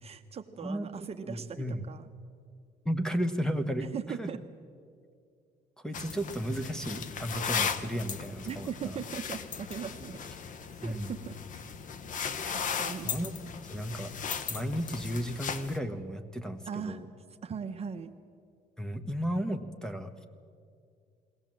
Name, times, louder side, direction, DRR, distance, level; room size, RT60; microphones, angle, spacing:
voice 1, 0.0-2.1 3.9-4.4 8.5-10.2 10.8-11.4 12.5-13.1 16.7-17.0 17.4-18.1, right 7 dB, 35° right, 6 dB, 0.9 m, -39 dB
voice 2, 0.6-1.9 2.8-4.3 5.8-9.0 10.8-11.1 13.0-13.3 13.6-14.1 14.5-17.1 18.8-20.2, equal, 5° left, 9 dB, 1.2 m, -34 dB
sound 1, 5.9-15.8, left 6 dB, 50° left, 1.0 m, -37 dB
21.5 x 17.0 x 7.6 m, 2.3 s
cardioid pair, 110°, 17 cm